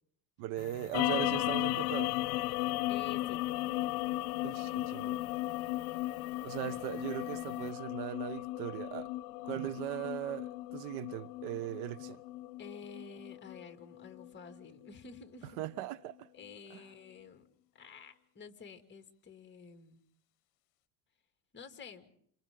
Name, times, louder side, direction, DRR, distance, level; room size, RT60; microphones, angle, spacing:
voice 1, 0.4-2.1 4.4-5.2 6.4-9.1 9.4-12.2 15.6-16.3 16.7-16.8, right 13 dB, 80° right, 1.2 m, -39 dB
sound 1, 0.6-7.7, left 18 dB, 60° left, 1.2 m, -51 dB
sound 2, 0.9-15.5, left 17 dB, 90° left, 0.8 m, -36 dB
voice 2, 2.9-3.4 6.6-6.8 12.6-15.6 16.3-17.5 17.8-20.0 21.5-22.1, left 5 dB, 25° left, 2.7 m, -50 dB
29.0 x 28.5 x 3.9 m
cardioid pair, 130°, 44 cm